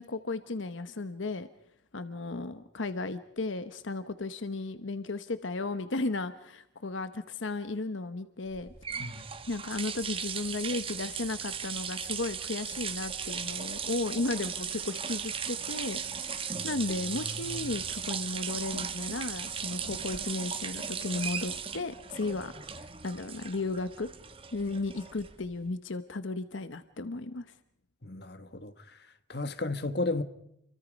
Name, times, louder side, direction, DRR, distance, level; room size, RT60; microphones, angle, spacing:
voice 1, 0.0-1.5 1.9-8.7 9.5-24.1 24.5-27.5, left 3 dB, 80° left, 1.0 m, -35 dB
sound 1, 8.5-25.6, right 7 dB, 30° right, 1.3 m, -37 dB
voice 2, 17.1-17.8 28.0-29.0 29.3-30.2, left 2 dB, 55° left, 1.5 m, -35 dB
29.5 x 24.0 x 5.3 m
head